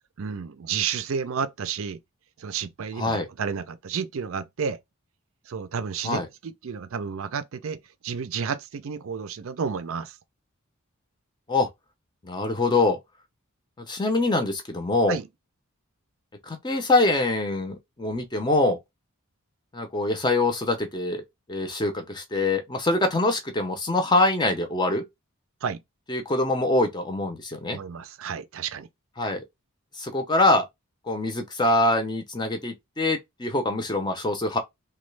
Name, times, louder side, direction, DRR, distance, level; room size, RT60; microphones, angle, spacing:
voice 1, 0.2-2.0 2.4-4.8 5.5-10.2 15.1-15.3 25.6-25.8 27.7-28.9, right 6 dB, 65° right, 0.4 m, -31 dB
voice 2, 3.0-3.3 6.0-6.3 11.5-11.7 12.2-13.0 13.9-15.2 16.4-18.8 19.7-21.2 21.5-25.0 26.1-27.8 29.2-29.4 29.9-30.7 31.1-34.6, left 2 dB, 20° left, 0.6 m, -24 dB
3.0 x 2.2 x 3.2 m
head